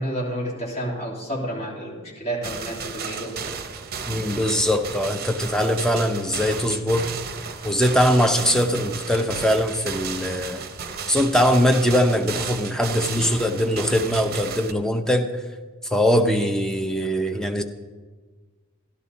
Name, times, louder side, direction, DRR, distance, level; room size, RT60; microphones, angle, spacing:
voice 1, 0.0-3.3, right 1 dB, 30° left, -3 dB, 2.8 m, -30 dB
sound 1, 2.4-14.7, right 6 dB, 45° right, 0.8 m, -33 dB
voice 2, 4.1-7.1 7.6-10.6 11.1-15.3 15.9-17.6, equal, 5° left, 5 dB, 0.7 m, -21 dB
12.5 x 11.5 x 4.1 m, 1.4 s
head